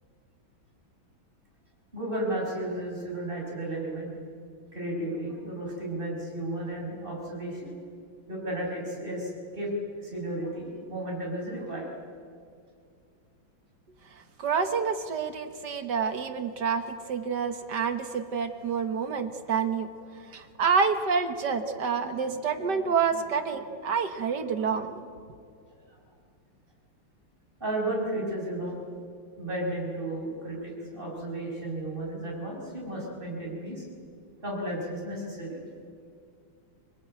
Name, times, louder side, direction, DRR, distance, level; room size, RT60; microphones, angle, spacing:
voice 1, 1.9-4.1 4.7-7.7 8.3-9.7 10.0-11.9 27.6-28.8 29.4-33.9 34.4-35.6, right 1 dB, 25° right, -2 dB, 6.4 m, -33 dB
voice 2, 14.4-16.8 17.1-19.9 20.3-25.0, right 6 dB, 60° right, 8 dB, 1.8 m, -28 dB
25.0 x 20.5 x 9.0 m, 2.3 s
omnidirectional pair, 2.2 m